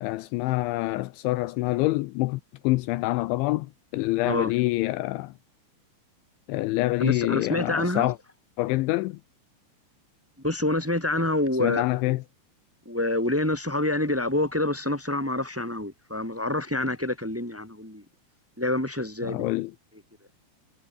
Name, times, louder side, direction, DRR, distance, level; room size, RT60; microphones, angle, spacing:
voice 1, 0.0-5.3 6.5-8.2 8.6-9.2 11.6-12.2 19.2-19.7, left 19 dB, 80° left, 2.9 m, -26 dB
voice 2, 7.0-8.1 10.4-12.2 12.8-18.0 18.6-19.6, left 1 dB, 5° right, 3.3 m, -27 dB
omnidirectional pair, 5.7 m